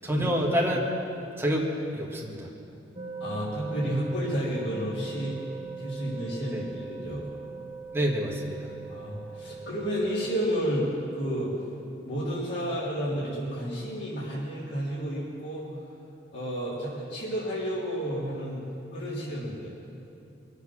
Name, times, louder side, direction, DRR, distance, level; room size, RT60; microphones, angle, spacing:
voice 1, 0.0-0.8 1.4-1.7 2.0-2.5 6.5-6.6 7.9-8.7, equal, 15° right, -2 dB, 1.9 m, -27 dB
sound 1, 3.0-10.3, right 5 dB, 30° right, 1.5 m, -40 dB
voice 2, 3.2-5.4 5.8-7.3 8.9-11.5 12.0-15.7 16.3-18.6 18.9-19.7, equal, 70° left, -8 dB, 3.7 m, -31 dB
23.0 x 8.1 x 6.3 m, 2.7 s
head